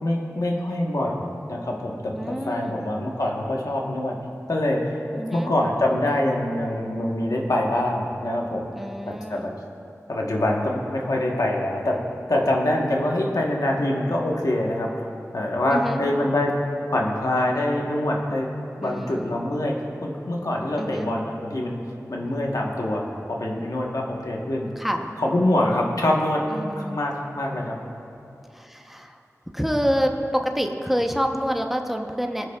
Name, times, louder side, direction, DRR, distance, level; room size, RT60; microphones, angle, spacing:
voice 1, 0.0-4.2 4.5-8.7 9.0-9.5 10.1-12.0 12.3-15.1 15.3-16.6 16.9-18.5 18.8-19.7 20.0-21.8 22.1-24.7 25.2-26.4 26.8-27.8, left 1 dB, 85° left, -1 dB, 1.1 m, -25 dB
voice 2, 2.1-2.8 5.2-5.5 8.7-9.5 15.7-16.0 18.8-19.4 20.8-21.1 24.8-25.1 26.5-27.0 28.5-29.2 29.5-32.5, equal, 5° right, 3 dB, 0.8 m, -27 dB
22.5 x 8.0 x 2.3 m, 2.7 s
wide cardioid pair, 60°, 6 cm